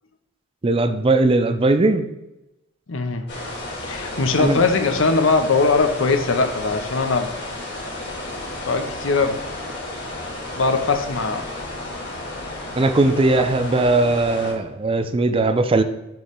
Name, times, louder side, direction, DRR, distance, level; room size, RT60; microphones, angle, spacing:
voice 1, 0.6-2.1 4.4-4.6 12.8-15.8, right 2 dB, 30° right, 9 dB, 0.5 m, -19 dB
voice 2, 2.9-3.3 3.8-7.3 8.7-9.4 10.6-11.5 13.3-13.5, left 4 dB, 80° left, 7 dB, 0.8 m, -20 dB
sound 1, 3.3-14.5, left 2 dB, 60° left, 2.2 m, -32 dB
6.9 x 3.2 x 5.2 m, 0.93 s
head